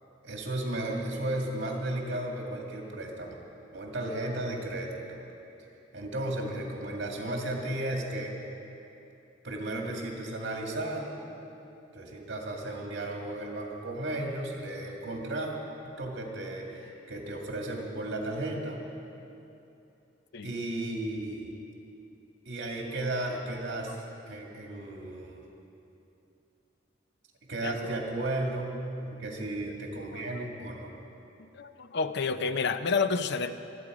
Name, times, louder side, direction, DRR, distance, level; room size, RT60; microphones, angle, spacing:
voice 1, 0.2-3.3 3.7-5.2 5.9-8.3 9.4-11.1 11.9-15.5 15.8-18.8 20.4-21.5 22.4-24.0 24.3-25.4 27.4-28.8 29.0-30.9, right 1 dB, 65° right, 0 dB, 2.2 m, -34 dB
voice 2, 31.5-33.5, left 4 dB, 65° left, 11 dB, 0.6 m, -30 dB
24.5 x 8.5 x 5.0 m, 2.8 s
head